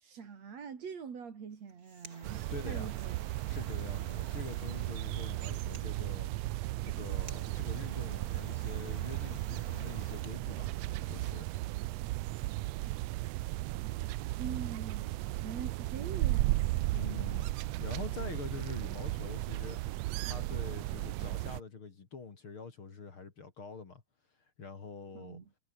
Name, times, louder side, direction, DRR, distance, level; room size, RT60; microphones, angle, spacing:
voice 1, 0.0-3.2 14.4-15.1 15.4-17.0 18.2-18.4 25.1-25.5, right 6 dB, 55° right, 3.8 m, -44 dB
sound 1, 1.5-10.3, right 3 dB, 25° right, 4.0 m, -54 dB
sound 2, 2.2-21.6, right 18 dB, 80° right, 1.5 m, -35 dB
voice 2, 2.5-2.9 3.5-6.3 6.8-11.5 16.9-17.5 17.8-24.0 24.6-25.4, left 5 dB, 40° left, 3.4 m, -45 dB
omnidirectional pair, 3.6 m